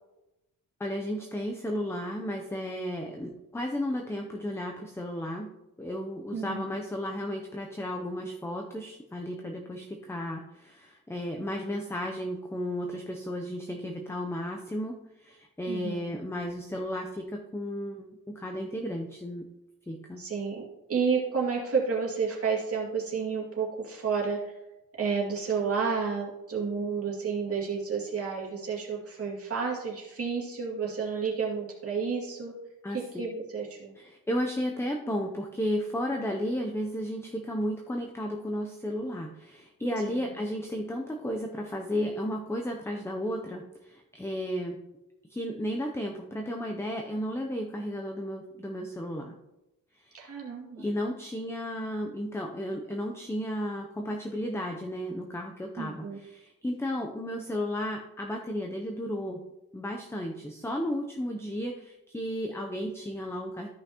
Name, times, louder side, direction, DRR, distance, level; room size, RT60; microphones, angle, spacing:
voice 1, 0.8-5.5 5.8-19.5 19.9-20.2 32.8-33.3 34.0-44.8 45.3-49.3 50.0-50.2 50.8-59.4 59.7-63.7, equal, 5° left, 2 dB, 0.5 m, -33 dB
voice 2, 6.3-6.7 15.7-16.2 20.2-20.6 20.9-24.4 25.0-32.5 32.9-33.9 40.0-40.3 50.1-50.9 55.8-56.2, right 5 dB, 40° right, -4 dB, 2.2 m, -31 dB
13.0 x 5.6 x 2.9 m, 0.97 s
wide cardioid pair, 145°, 36 cm